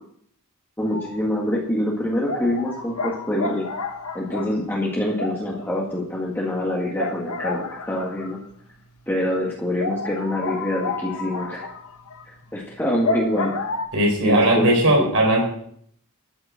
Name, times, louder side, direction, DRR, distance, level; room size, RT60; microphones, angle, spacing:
sound 1, 0.8-1.2 1.6-1.7 2.3-8.6 9.0-9.1 9.4-9.5 9.8-13.9, left 3 dB, 85° left, 1.4 m, -31 dB
voice 1, 0.8-3.6 4.1-8.4 9.1-11.7 12.3-13.6 14.2-15.1, left 1 dB, 10° left, -4 dB, 1.9 m, -25 dB
voice 2, 13.9-15.4, right 1 dB, 70° right, 0 dB, 4.2 m, -18 dB
13.0 x 6.7 x 7.6 m, 0.65 s
head